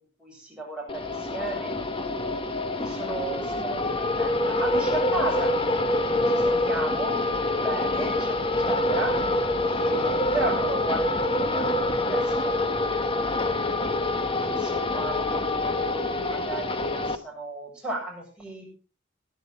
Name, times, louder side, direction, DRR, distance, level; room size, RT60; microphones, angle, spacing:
voice 1, 0.2-1.7 2.6-5.5 6.3-9.2 9.6-11.7 12.1-13.1 13.4-13.5 14.2-18.6, right 1 dB, 5° right, -3 dB, 7.6 m, -35 dB
sound 1, 0.9-17.1, left 2 dB, 25° left, 1.1 m, -26 dB
18.0 x 10.5 x 4.3 m, 0.34 s
head